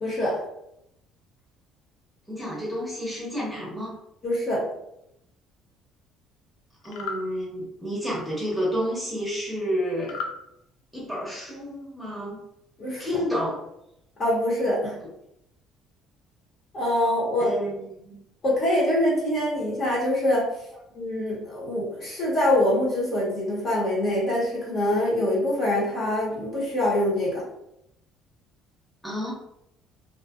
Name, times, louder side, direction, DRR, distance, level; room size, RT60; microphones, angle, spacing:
voice 1, 0.0-0.4 4.2-4.6 12.8-13.2 14.2-15.0 16.7-17.6 18.4-20.5 20.9-27.4, left 1 dB, 40° left, -5 dB, 1.1 m, -24 dB
voice 2, 2.3-3.9 6.8-10.2 10.9-12.4 13.0-13.6 17.4-18.2 29.0-29.3, equal, ahead, -7 dB, 1.0 m, -30 dB
sound 1, 6.8-7.2 10.0-10.4, left 4 dB, 90° left, 0.4 m, -33 dB
2.6 x 2.4 x 2.4 m, 0.82 s
cardioid pair, 120°, 0 cm